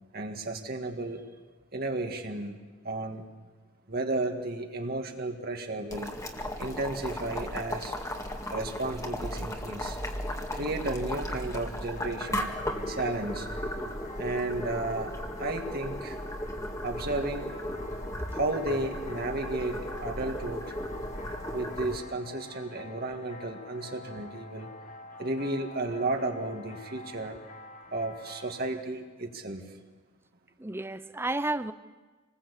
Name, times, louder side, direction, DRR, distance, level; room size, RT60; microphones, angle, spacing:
voice 1, 0.1-1.2 1.7-2.6 2.8-3.2 3.9-6.1 6.6-8.0 8.5-10.0 10.5-12.5 12.9-13.5 14.2-15.1 15.4-16.2 16.8-17.5 18.3-20.7 21.5-24.7 25.2-27.4 27.9-29.6, right 2 dB, 45° right, 4 dB, 2.1 m, -33 dB
Boiling, 5.9-22.0, left 1 dB, 15° left, 2.0 m, -36 dB
sound 1, 12.0-28.8, left 2 dB, 35° left, 1.6 m, -48 dB
voice 2, 30.6-31.7, right 2 dB, 10° right, 13 dB, 0.7 m, -32 dB
27.0 x 20.5 x 8.5 m, 1.3 s
head